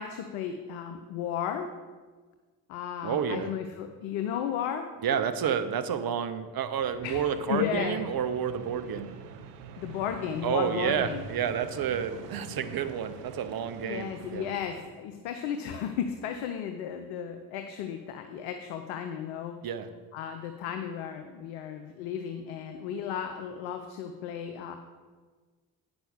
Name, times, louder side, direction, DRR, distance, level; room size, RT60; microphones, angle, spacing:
voice 1, 0.0-1.7 2.7-4.9 7.0-8.1 9.8-11.2 13.8-19.6 20.1-24.8, left 8 dB, 75° left, 6 dB, 0.8 m, -34 dB
voice 2, 3.0-3.5 5.0-9.1 10.4-14.5 19.6-19.9, right 8 dB, 50° right, 10 dB, 0.9 m, -30 dB
sound 1, 6.8-14.9, right 6 dB, 85° right, 0.7 m, -45 dB
8.7 x 6.2 x 6.7 m, 1.4 s
hypercardioid pair, 45°, 46 cm